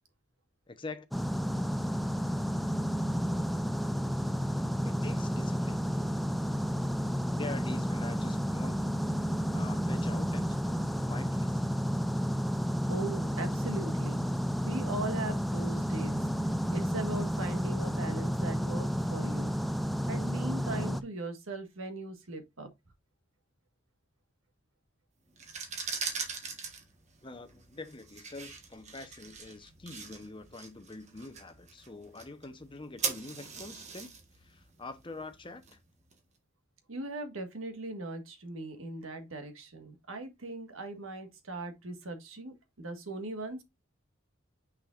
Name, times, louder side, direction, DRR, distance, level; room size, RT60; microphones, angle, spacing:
voice 1, 0.7-1.1 4.8-6.2 7.3-11.8 27.2-35.8, left 2 dB, 25° left, 0.8 m, -45 dB
sound 1, 1.1-21.0, equal, ahead, 0.4 m, -31 dB
voice 2, 12.9-14.3 14.6-16.2 16.7-19.6 20.0-22.7 36.9-43.6, right 2 dB, 90° right, 1.6 m, -39 dB
sound 2, 25.3-36.1, right 5 dB, 35° right, 1.3 m, -41 dB
6.4 x 6.2 x 2.5 m
head